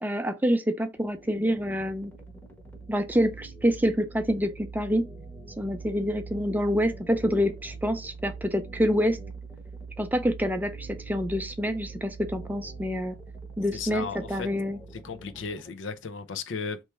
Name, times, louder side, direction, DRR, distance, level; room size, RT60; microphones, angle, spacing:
voice 1, 0.0-2.1 2.9-5.0 5.6-9.2 10.0-13.2 13.6-14.8, equal, 10° right, 0.5 m, -27 dB
sound 1, 1.0-15.7, left 1 dB, 10° left, 0.9 m, -50 dB
sound 2, 1.1-15.6, right 5 dB, 75° right, 0.7 m, -44 dB
voice 2, 13.7-14.5 15.0-16.8, left 5 dB, 90° left, 0.6 m, -35 dB
3.3 x 3.0 x 4.5 m
head